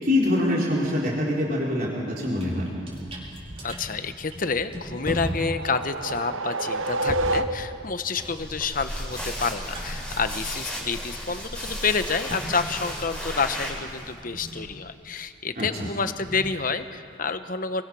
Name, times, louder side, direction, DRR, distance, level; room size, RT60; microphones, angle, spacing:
voice 1, 0.0-2.7 15.6-15.7, left 1 dB, 45° right, -5 dB, 4.2 m, -24 dB
sound 1, 1.6-1.8 2.1-11.0 11.2-17.2, equal, 30° right, 4.8 m, -39 dB
voice 2, 3.6-17.8, left 4 dB, 45° left, 10 dB, 1.0 m, -29 dB
sound 2, 4.7-8.0, right 2 dB, 90° right, 1.1 m, -29 dB
sound 3, 8.2-14.1, equal, 5° left, 5.0 m, -34 dB
27.5 x 22.5 x 6.4 m, 2.6 s
head